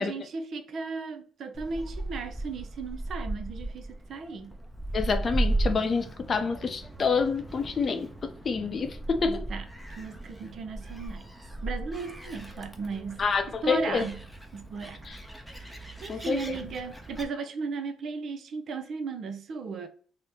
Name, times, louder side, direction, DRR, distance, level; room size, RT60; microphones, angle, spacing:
voice 1, 0.0-4.5 9.2-11.3 11.6-14.2 14.5-15.0 15.6-19.9, right 4 dB, 60° right, 0.5 m, -36 dB
Gull seagull, 1.5-17.3, right 1 dB, ahead, 0.6 m, -36 dB
voice 2, 4.9-9.4 13.2-14.1 15.1-15.2 16.1-16.6, left 5 dB, 45° left, 0.6 m, -28 dB
2.8 x 2.1 x 3.4 m
cardioid pair, 90°, 0 cm